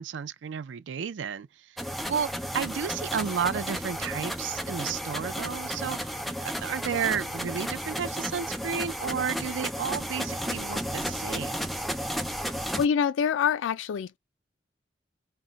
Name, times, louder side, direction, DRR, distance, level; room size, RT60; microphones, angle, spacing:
voice 1, 0.0-1.8 2.1-2.3 2.5-6.1 6.4-11.7, right 7 dB, 80° right, 0.4 m, -32 dB
sound 1, 1.8-12.9, equal, ahead, 0.4 m, -33 dB
voice 2, 12.8-14.2, left 7 dB, 90° left, 0.3 m, -25 dB
2.1 x 2.1 x 3.8 m
head